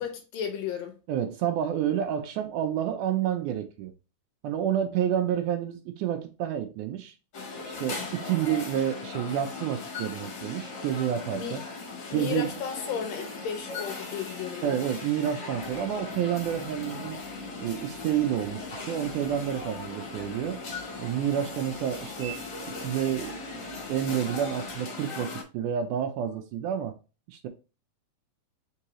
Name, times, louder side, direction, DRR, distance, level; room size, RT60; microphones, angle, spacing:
voice 1, 0.0-1.0 11.4-11.5 12.1-14.8, left 8 dB, 80° left, 1.5 m, -34 dB
voice 2, 1.1-3.9 4.4-7.1 7.7-11.6 12.1-12.6 14.6-17.2 17.6-20.6 21.0-22.4 22.7-23.4 23.9-27.0 27.3-27.5, right 10 dB, 80° right, 1.8 m, -29 dB
sound 1, 7.3-25.4, left 4 dB, 60° left, 1.3 m, -39 dB
sound 2, 15.5-24.8, right 1 dB, 20° right, 1.3 m, -46 dB
4.6 x 3.8 x 2.9 m
omnidirectional pair, 4.0 m